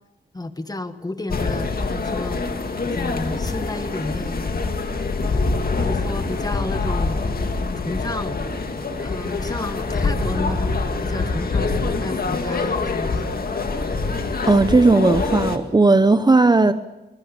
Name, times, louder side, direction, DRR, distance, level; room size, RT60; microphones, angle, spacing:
voice 1, 0.3-2.5 2.8-4.5 5.2-7.2 7.8-8.4 9.0-13.3, left 2 dB, 20° left, 10 dB, 1.6 m, -31 dB
sound 1, 1.3-15.6, left 3 dB, 55° left, 2.2 m, -25 dB
voice 2, 14.5-16.7, right 3 dB, 25° right, 11 dB, 0.8 m, -15 dB
23.5 x 20.5 x 6.9 m, 1.0 s
wide cardioid pair, 95°, 18 cm